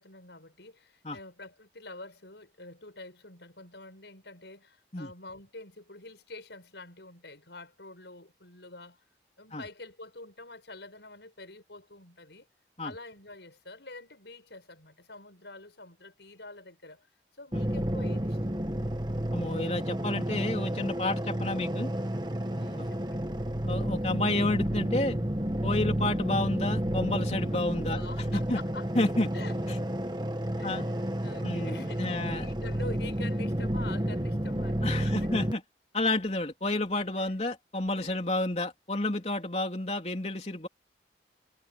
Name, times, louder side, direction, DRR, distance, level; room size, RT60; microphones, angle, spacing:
voice 1, 0.0-9.0 9.4-12.5 12.8-18.5 22.5-23.3 27.5-28.9 29.3-29.9 30.6-30.9 31.2-35.3 37.1-37.3 38.0-38.3, left 2 dB, 80° left, 6.2 m, -47 dB
sound 1, 17.5-35.5, equal, 25° right, 1.5 m, -31 dB
voice 2, 19.3-21.9 22.8-22.9 23.7-25.2 25.6-28.0 28.3-28.6 29.0-29.3 30.6-30.9 31.4-32.5 34.8-35.6 35.9-40.7, left 2 dB, 35° left, 3.5 m, -30 dB
head